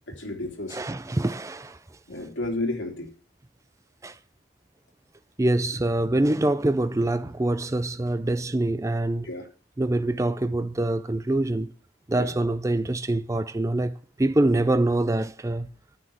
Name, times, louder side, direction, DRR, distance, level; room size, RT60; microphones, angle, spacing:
voice 1, 0.1-0.8 2.1-3.1 9.2-9.4 12.2-12.3, left 2 dB, 80° left, 3.0 m, -31 dB
voice 2, 0.7-1.8 4.0-4.2 5.4-9.3 9.8-11.7 12.1-15.7, right 1 dB, 15° right, 0.4 m, -25 dB
9.5 x 6.0 x 7.8 m
head